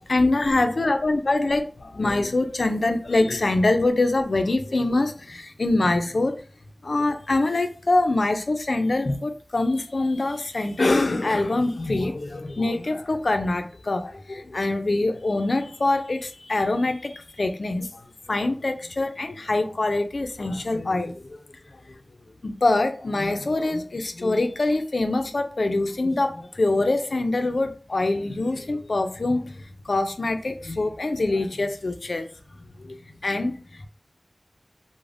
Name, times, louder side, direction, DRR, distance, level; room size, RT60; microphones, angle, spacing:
voice 1, 0.1-6.4 6.8-21.4 21.7-22.0 22.4-32.3 32.8-33.9, left 2 dB, 75° left, 0.4 m, -24 dB
3.2 x 2.0 x 2.5 m
wide cardioid pair, 55°, 0 cm